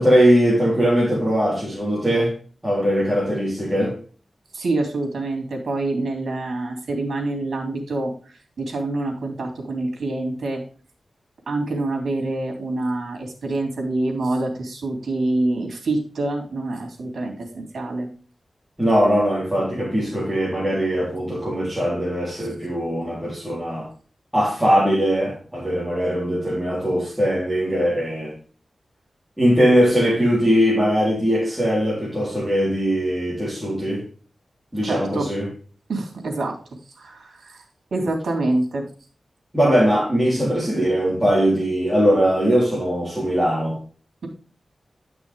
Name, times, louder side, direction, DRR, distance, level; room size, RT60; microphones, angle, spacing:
voice 1, 0.0-2.3 2.6-4.0 18.8-23.9 24.3-28.3 29.4-34.0 34.7-35.5 39.5-43.8, equal, 5° right, 3.9 m, -20 dB
voice 2, 4.5-8.1 8.6-10.6 11.5-18.1 34.8-35.3 35.9-36.5 37.0-37.6 37.9-38.8, right 2 dB, 85° right, 3.5 m, -26 dB
11.5 x 6.1 x 3.7 m
wide cardioid pair, 135°, 0 cm